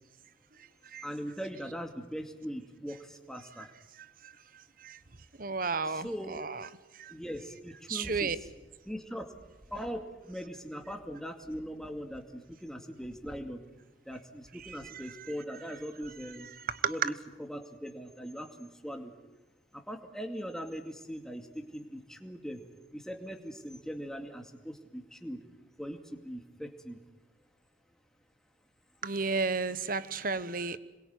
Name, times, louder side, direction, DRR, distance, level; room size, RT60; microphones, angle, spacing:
voice 1, 1.0-3.7 5.8-6.4 7.1-8.5 8.9-9.3 9.7-13.6 14.1-16.5 16.9-19.1 19.7-22.6 22.9-25.4 25.8-27.0, equal, 5° left, 4 dB, 2.4 m, -40 dB
voice 2, 5.4-6.7 7.0-7.1 7.9-8.4 14.9-15.0 16.7-17.1 29.0-30.8, right 4 dB, 50° right, 14 dB, 1.1 m, -32 dB
26.5 x 22.5 x 9.6 m, 1.1 s
head